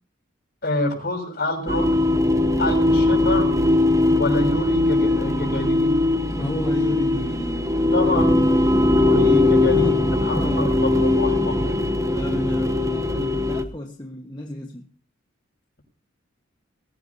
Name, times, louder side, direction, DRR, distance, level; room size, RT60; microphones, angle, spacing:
voice 1, 0.6-2.0 2.6-3.6 4.2-6.0 7.9-9.9 10.2-11.9, left 1 dB, 50° left, 6.6 m, -27 dB
sound 1, 1.7-13.6, left 2 dB, 15° right, 0.9 m, -20 dB
voice 2, 6.3-8.5 9.2-9.4 9.7-10.8 11.8-14.9, left 1 dB, 20° left, 1.4 m, -32 dB
22.5 x 16.5 x 2.8 m
head